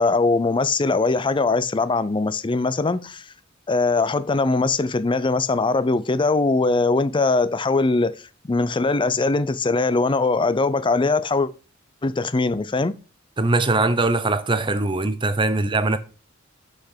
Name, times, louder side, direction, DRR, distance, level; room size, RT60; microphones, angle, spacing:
voice 1, 0.0-3.2 3.7-8.1 8.4-11.5 12.0-13.0, left 3 dB, 25° left, 0.5 m, -21 dB
voice 2, 13.4-16.0, right 2 dB, 25° right, 0.8 m, -21 dB
5.9 x 5.8 x 6.6 m
head